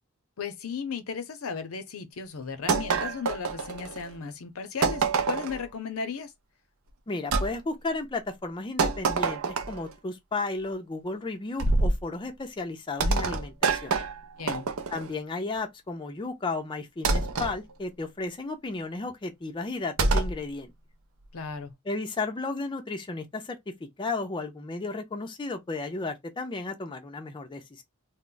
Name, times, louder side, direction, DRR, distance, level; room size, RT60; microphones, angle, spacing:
voice 1, 0.4-6.3 14.4-14.7 21.3-21.7, left 5 dB, 80° left, 0.6 m, -35 dB
sound 1, 2.7-4.1 4.8-5.6 7.3-7.5 8.8-9.9 11.6-12.0 13.0-15.1 17.0-17.5 20.0-20.4, right 3 dB, 85° right, 0.5 m, -26 dB
voice 2, 7.1-13.9 14.9-20.7 21.9-23.6 24.0-27.8, left 3 dB, 25° left, 0.4 m, -33 dB
2.2 x 2.0 x 3.8 m
head